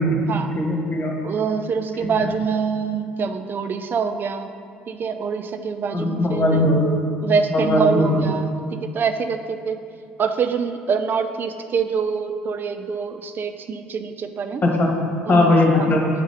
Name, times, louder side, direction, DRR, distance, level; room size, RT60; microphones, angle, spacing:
voice 1, 0.5-1.1 2.0-2.1 5.9-6.9 7.5-8.2 14.6-14.9 15.3-16.0, left 1 dB, 35° left, 0 dB, 1.4 m, -19 dB
voice 2, 1.2-4.5 4.9-6.7 7.2-9.8 10.2-14.6 15.3-15.9, right 6 dB, 45° right, 9 dB, 0.4 m, -25 dB
6.7 x 3.1 x 5.5 m, 2.4 s
hypercardioid pair, 60°, 5 cm